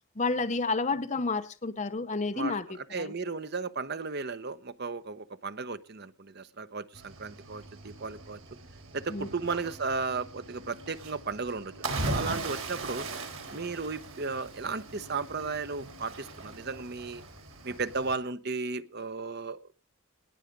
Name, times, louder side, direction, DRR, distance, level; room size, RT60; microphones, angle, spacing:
voice 1, 0.2-3.1 9.1-9.3, left 3 dB, 35° left, 0.8 m, -30 dB
voice 2, 2.9-8.4 8.9-11.7 12.1-13.1 13.5-17.2 17.6-19.7, right 4 dB, 50° right, 0.9 m, -35 dB
Cricket / Waves surf, 6.9-18.2, right 2 dB, 75° right, 3.9 m, -39 dB
19.5 x 7.4 x 5.3 m
head